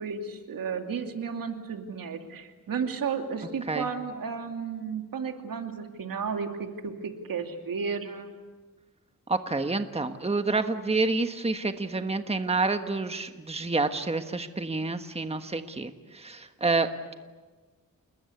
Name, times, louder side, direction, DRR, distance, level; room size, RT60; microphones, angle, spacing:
voice 1, 0.0-8.3, right 6 dB, 80° right, 5 dB, 2.7 m, -33 dB
voice 2, 9.3-17.1, right 3 dB, 20° right, 8 dB, 1.4 m, -28 dB
29.0 x 20.5 x 8.4 m, 1.3 s
wide cardioid pair, 100°, 33 cm